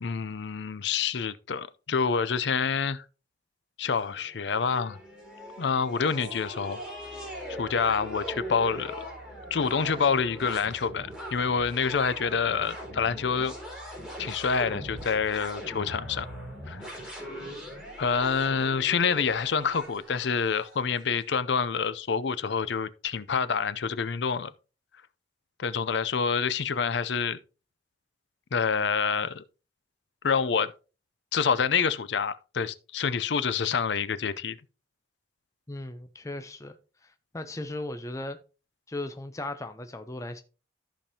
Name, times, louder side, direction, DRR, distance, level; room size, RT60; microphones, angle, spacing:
voice 1, 0.0-3.0 3.8-5.0 5.6-6.8 7.6-9.0 9.5-13.5 14.2-16.3 16.7-17.1 18.0-24.5 25.6-27.4 28.5-29.4 30.2-30.7 31.3-34.6, left 6 dB, 70° left, 0.5 m, -27 dB
sound 1, 4.0-21.0, equal, 5° right, 4.1 m, -41 dB
voice 2, 35.7-36.8 37.0-38.4 38.9-40.4, left 1 dB, 15° left, 0.6 m, -37 dB
14.0 x 5.2 x 2.8 m
head